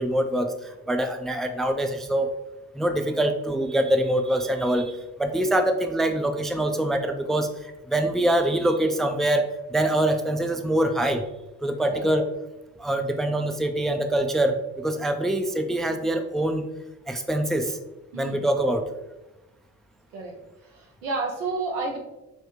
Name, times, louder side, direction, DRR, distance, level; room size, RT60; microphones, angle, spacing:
voice 1, 0.0-2.3 2.7-11.3 11.6-12.2 12.8-16.6 17.1-17.8 18.1-18.8, right 1 dB, ahead, 6 dB, 0.4 m, -24 dB
voice 2, 18.1-18.5 20.1-20.4 20.6-22.0, right 3 dB, 85° right, 0 dB, 0.8 m, -31 dB
5.7 x 2.3 x 3.0 m, 0.99 s
hypercardioid pair, 40°, 38 cm